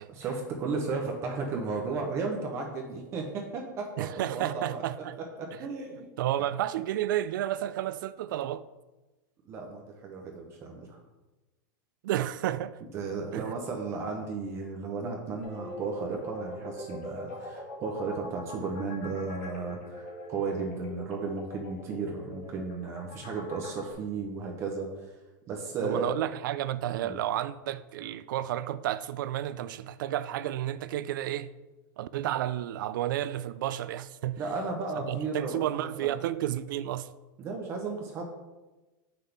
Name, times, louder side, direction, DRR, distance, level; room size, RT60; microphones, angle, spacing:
voice 1, 0.1-4.8 5.4-6.1 6.4-6.5 9.5-11.0 12.9-25.1 25.5-26.1 27.0-27.2 34.4-36.1 37.4-38.2, right 4 dB, 25° right, 0.8 m, -34 dB
voice 2, 4.0-5.2 6.2-8.7 12.0-12.8 13.3-13.5 25.8-31.5 32.0-34.4 34.9-37.1, right 12 dB, 75° right, 0.4 m, -31 dB
sound 1, 15.4-23.9, left 1 dB, 55° left, 1.6 m, -42 dB
7.2 x 5.9 x 3.4 m
supercardioid pair, 170°, 11 cm